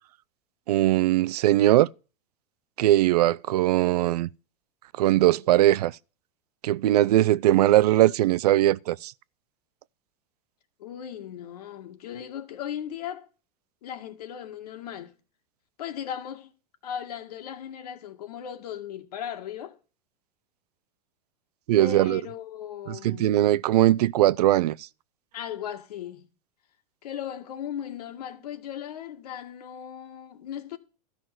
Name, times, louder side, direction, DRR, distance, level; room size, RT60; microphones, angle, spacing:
voice 1, 0.7-1.9 2.8-4.3 5.0-5.9 6.6-9.1 21.7-22.2 22.9-24.8, right 14 dB, 80° right, 0.6 m, -20 dB
voice 2, 10.8-13.3 13.8-15.1 15.8-16.5 16.8-19.8 21.8-23.5 25.3-26.3 27.0-30.8, left 9 dB, 80° left, 2.1 m, -37 dB
13.0 x 6.0 x 7.8 m
supercardioid pair, 125°, 20 cm